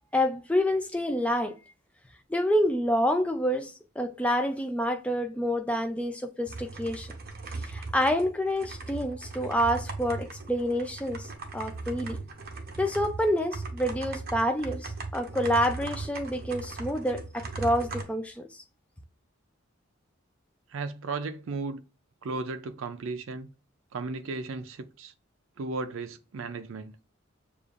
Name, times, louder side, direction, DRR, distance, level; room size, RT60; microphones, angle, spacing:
voice 1, 0.1-1.5 2.3-7.1 7.6-12.2 12.8-18.6, equal, 5° left, 0.3 m, -28 dB
sound 1, 6.5-18.0, right 3 dB, 45° right, 0.8 m, -38 dB
voice 2, 20.7-21.8 22.2-23.5 23.9-25.1 25.6-26.9, right 3 dB, 75° right, 0.4 m, -35 dB
6.8 x 2.4 x 2.4 m
head